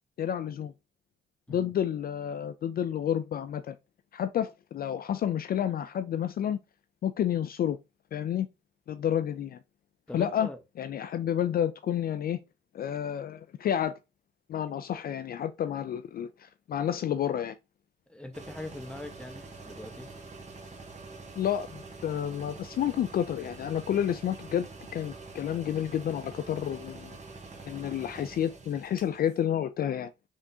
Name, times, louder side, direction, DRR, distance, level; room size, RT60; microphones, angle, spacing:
voice 1, 0.2-0.7 1.5-3.8 4.1-6.6 7.0-7.8 8.1-8.5 8.9-9.6 10.1-10.5 10.8-12.4 12.7-13.9 14.5-17.5 21.4-27.2 27.6-30.1, left 10 dB, 50° left, 0.4 m, -30 dB
voice 2, 10.1-10.6 18.1-20.1, left 1 dB, 5° left, 0.9 m, -42 dB
sound 1, 18.3-29.4, right 3 dB, 35° right, 1.0 m, -46 dB
3.6 x 3.6 x 2.7 m
cardioid pair, 90°, 20 cm